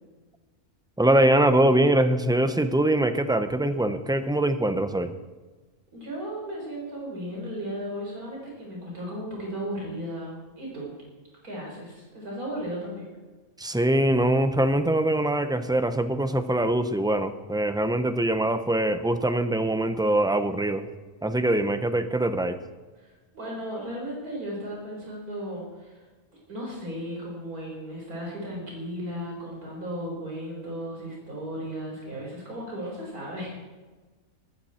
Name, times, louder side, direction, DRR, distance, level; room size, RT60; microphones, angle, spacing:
voice 1, 1.0-5.1 13.6-20.9 21.2-22.6, right 1 dB, 5° right, 9 dB, 0.4 m, -23 dB
voice 2, 5.9-10.9 11.4-13.1 23.0-26.0 26.5-33.7, equal, 75° right, -3 dB, 5.1 m, -35 dB
19.0 x 14.0 x 4.4 m, 1.3 s
omnidirectional pair, 1.6 m